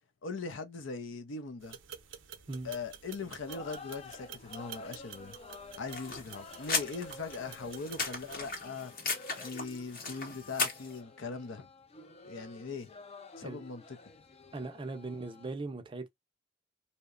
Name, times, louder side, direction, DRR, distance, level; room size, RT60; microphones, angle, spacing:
voice 1, 0.2-1.8 2.6-5.4 5.8-8.9 9.4-11.7 12.2-12.9 13.4-14.0, left 4 dB, 80° left, 0.6 m, -40 dB
sound 1, 1.6-8.6, right 8 dB, 75° right, 0.5 m, -50 dB
sound 2, 3.5-15.5, left 3 dB, 35° left, 0.4 m, -51 dB
sound 3, 5.9-11.0, left 4 dB, 50° left, 0.9 m, -37 dB
voice 2, 14.5-16.1, right 3 dB, 25° right, 0.4 m, -39 dB
2.8 x 2.1 x 2.3 m
head